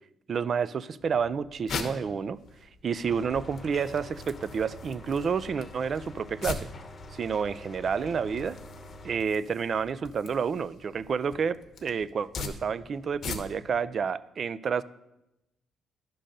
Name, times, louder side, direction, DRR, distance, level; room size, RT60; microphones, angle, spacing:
voice 1, 0.3-2.4 2.8-6.7 7.1-8.6 9.0-14.8, right 6 dB, 50° right, 16 dB, 0.3 m, -29 dB
sound 1, 1.0-13.8, left 5 dB, 65° left, 0.9 m, -42 dB
sound 2, 3.1-9.2, left 1 dB, 40° left, 0.8 m, -45 dB
10.0 x 3.8 x 6.5 m, 0.90 s
cardioid pair, 90°, 0 cm